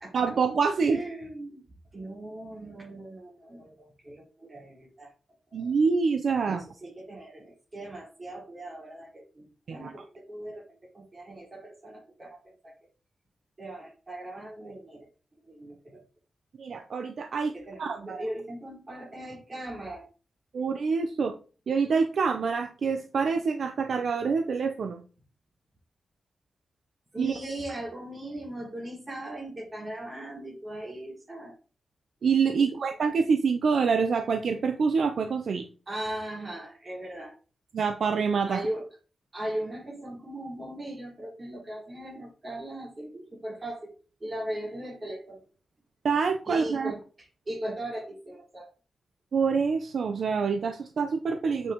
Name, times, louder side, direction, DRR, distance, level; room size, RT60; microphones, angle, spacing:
voice 1, 0.1-1.0 5.5-6.6 9.7-9.9 16.6-17.5 17.8-18.2 20.5-21.3 21.7-25.0 27.2-27.3 32.2-35.6 37.7-38.6 46.0-46.9 49.3-51.7, right 5 dB, 65° right, 6 dB, 0.7 m, -26 dB
voice 2, 0.8-1.6 1.9-5.1 5.5-5.7 6.5-12.7 13.6-15.1 15.4-16.0 17.5-20.1 27.1-31.5 32.5-32.7 35.9-37.3 38.5-38.9 39.3-43.9 44.2-45.4 46.4-48.7, right 1 dB, 30° right, -3 dB, 4.5 m, -39 dB
8.4 x 6.2 x 3.0 m, 0.36 s
cardioid pair, 95°, 0 cm